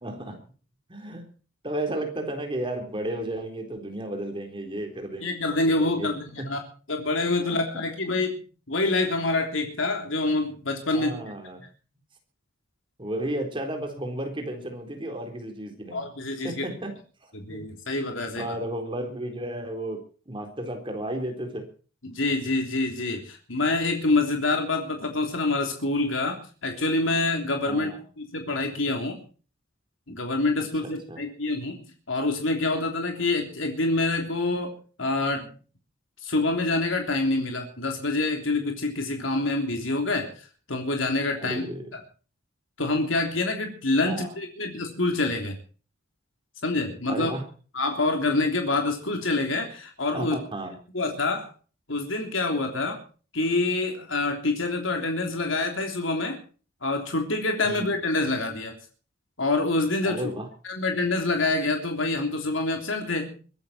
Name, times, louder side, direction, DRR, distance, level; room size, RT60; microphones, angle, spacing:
voice 1, 0.0-0.4 0.9-1.3 1.6-5.3 5.7-6.1 6.4-6.5 7.4-7.8 10.9-11.6 13.0-16.1 16.4-16.9 17.5-17.6 18.4-21.6 27.7-28.0 30.8-31.2 41.4-42.0 44.1-44.3 47.1-47.4 50.1-50.8 57.6-58.0 60.0-60.5, right 1 dB, 25° right, 4 dB, 4.0 m, -33 dB
voice 2, 5.2-6.6 6.9-8.4 8.7-11.2 15.9-16.6 17.3-18.5 22.0-27.9 28.2-29.2 30.1-31.8 32.1-35.5 36.2-40.3 40.7-41.7 42.8-45.6 46.6-47.3 47.7-50.4 50.9-51.5 51.9-53.0 53.3-56.4 56.8-58.8 59.4-60.2 60.6-63.3, left 2 dB, 80° left, 3 dB, 3.3 m, -26 dB
23.0 x 12.0 x 4.4 m, 0.39 s
head